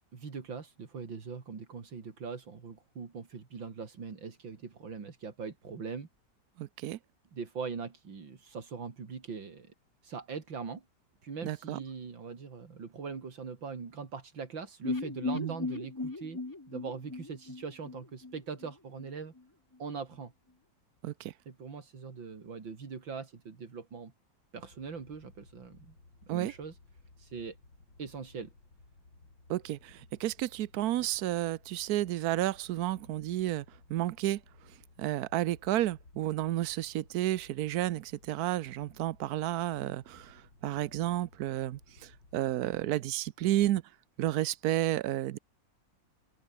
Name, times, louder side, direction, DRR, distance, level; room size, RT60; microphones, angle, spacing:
voice 1, 0.1-6.1 7.3-9.7 10.0-10.8 11.2-16.4 16.7-19.3 19.8-20.3 21.5-24.1 24.5-26.0 26.3-26.8 27.2-27.6 28.0-28.5, right 5 dB, 85° right, 3.6 m, -41 dB
voice 2, 6.6-7.0 11.4-11.8 15.3-15.6 21.0-21.3 26.3-26.5 29.5-33.6 33.9-34.4 35.0-43.8 44.2-45.4, right 14 dB, 65° right, 1.0 m, -31 dB
sound 1, 14.8-18.7 19.0-19.1 19.4-19.5, left 2 dB, 15° left, 0.7 m, -37 dB
sound 2, 24.6-42.9, left 3 dB, 70° left, 6.2 m, -59 dB
open air
omnidirectional pair, 2.0 m